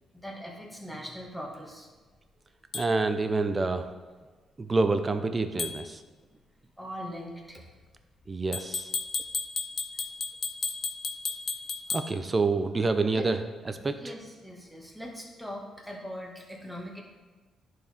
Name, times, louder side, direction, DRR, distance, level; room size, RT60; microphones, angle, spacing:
voice 1, 0.1-1.9 6.8-7.6 13.0-13.3 13.8-17.0, equal, ahead, -1 dB, 1.6 m, -41 dB
sound 1, 2.7-2.9 5.6-5.8 8.5-12.1, left 4 dB, 50° left, 0.7 m, -33 dB
voice 2, 2.7-3.9 4.6-6.0 8.3-8.9 11.9-13.4 13.7-14.0, right 3 dB, 25° right, 9 dB, 0.6 m, -27 dB
10.5 x 4.7 x 3.6 m, 1.4 s
cardioid pair, 90°, 0 cm